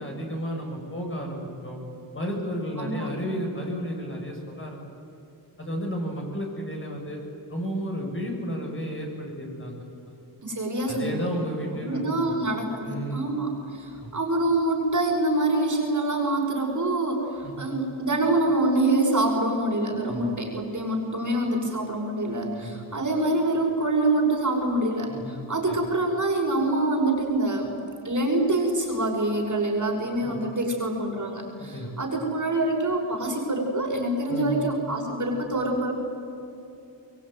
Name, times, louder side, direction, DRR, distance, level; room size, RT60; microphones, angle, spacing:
voice 1, 0.0-1.8 2.1-4.8 5.6-7.2 7.5-9.8 10.9-12.5 12.8-13.3 14.0-14.1 17.4-17.8 20.0-20.3 22.6-22.7 25.1-25.4 25.7-25.8 30.2-30.4 31.6-31.9 34.3-34.7, equal, 25° left, 0 dB, 7.8 m, -32 dB
voice 2, 2.8-3.1 10.4-11.2 11.8-27.8 28.0-36.0, right 2 dB, 40° right, 0 dB, 6.1 m, -25 dB
24.5 x 22.0 x 9.5 m, 2.7 s
cardioid pair, 80°, 44 cm